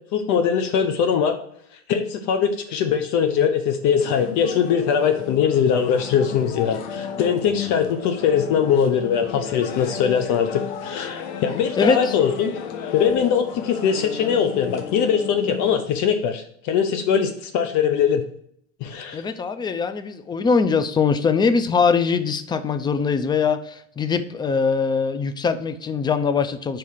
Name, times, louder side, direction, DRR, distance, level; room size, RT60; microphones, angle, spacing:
voice 1, 0.1-1.4 1.9-12.5 12.9-18.2 18.8-19.2, left 7 dB, 50° left, 7 dB, 0.8 m, -21 dB
sound 1, 4.0-15.8, left 7 dB, 70° left, 1.1 m, -34 dB
voice 2, 11.8-12.1 19.1-26.8, left 5 dB, 10° left, 11 dB, 0.4 m, -22 dB
4.8 x 4.6 x 5.6 m, 0.68 s
hypercardioid pair, 105°, 38 cm